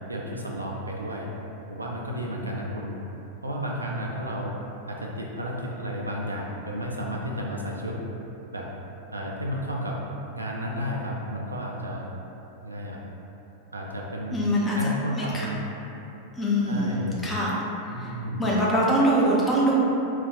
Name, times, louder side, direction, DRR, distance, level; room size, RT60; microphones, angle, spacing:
voice 1, 0.1-1.3 1.7-2.9 3.4-4.5 4.9-8.0 8.5-8.7 9.1-10.0 10.3-12.0 12.6-13.0 13.7-14.4 14.8-15.6 16.7-17.3 17.9-18.4, equal, 80° right, -2 dB, 0.3 m, -32 dB
voice 2, 14.3-14.8 15.1-15.5 16.4-17.5 18.0-18.1 18.4-19.8, right 1 dB, 15° left, -6 dB, 0.6 m, -23 dB
2.6 x 2.3 x 3.7 m, 3.0 s
figure-of-eight pair, 90°, 0 cm